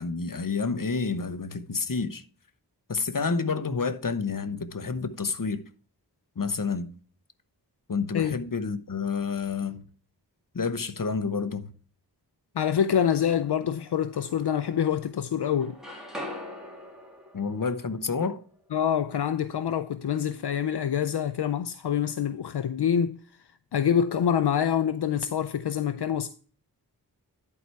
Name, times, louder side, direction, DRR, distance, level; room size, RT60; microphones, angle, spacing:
voice 1, 0.0-2.2 2.9-5.6 6.4-6.9 7.9-9.8 10.5-11.7 17.3-18.4, left 5 dB, 50° left, 0.9 m, -29 dB
voice 2, 12.6-15.8 18.7-26.3, left 8 dB, 75° left, 0.5 m, -26 dB
sound 1, 13.0-13.6 14.1-15.2 15.4-19.4, left 1 dB, ahead, 2.9 m, -43 dB
11.0 x 4.6 x 4.4 m
wide cardioid pair, 55°, 41 cm